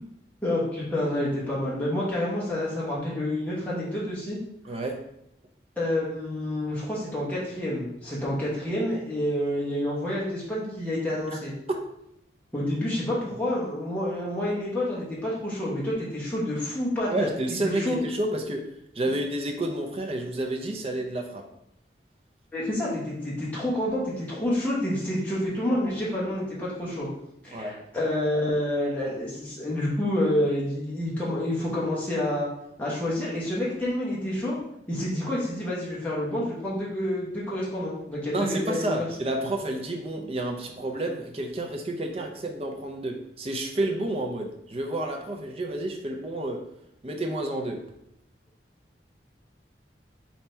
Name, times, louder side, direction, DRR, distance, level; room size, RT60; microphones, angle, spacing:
voice 1, 0.4-4.4 5.8-11.5 12.5-17.3 17.6-18.0 22.5-27.1 27.4-32.5 32.8-34.6 34.9-39.1 40.2-40.3, left 1 dB, 10° left, -7 dB, 0.9 m, -28 dB
voice 2, 4.6-5.0 11.3-11.4 11.7-11.8 17.1-18.6 18.9-21.4 27.5-27.8 38.3-46.6 47.0-47.8, right 1 dB, 35° right, 2 dB, 0.5 m, -30 dB
3.4 x 2.8 x 4.2 m, 0.78 s
head